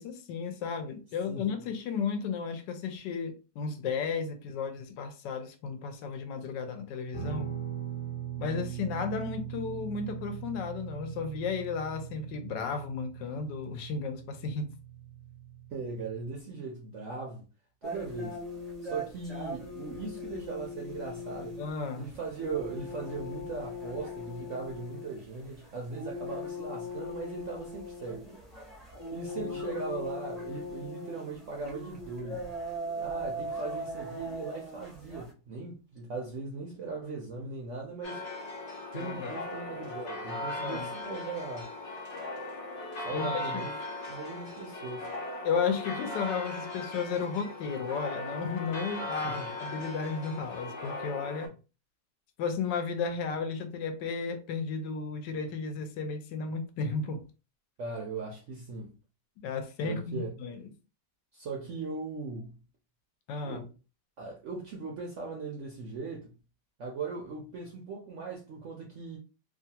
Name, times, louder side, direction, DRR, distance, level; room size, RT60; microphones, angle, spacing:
voice 1, 0.0-7.5 8.4-14.7 21.6-22.1 29.4-29.5 38.9-39.3 40.6-40.9 43.1-43.6 45.4-51.5 52.4-57.2 59.4-60.7 63.3-63.6, left 5 dB, 80° left, 1.2 m, -34 dB
voice 2, 1.3-1.6 15.7-17.5 17.8-18.4 18.8-21.6 22.0-28.3 29.1-32.4 33.0-38.3 38.9-41.7 43.0-43.7 44.1-45.1 49.2-49.5 57.8-58.9 59.8-60.3 61.3-62.6 63.4-63.7 64.2-66.3 66.8-69.2, right 4 dB, 70° right, 0.7 m, -39 dB
Guitar, 7.1-16.4, right 9 dB, 25° left, 0.7 m, -41 dB
sound 1, 17.8-35.3, left 1 dB, ahead, 0.3 m, -40 dB
sound 2, 38.0-51.5, left 2 dB, 55° left, 0.8 m, -38 dB
3.0 x 2.4 x 2.8 m
omnidirectional pair, 1.9 m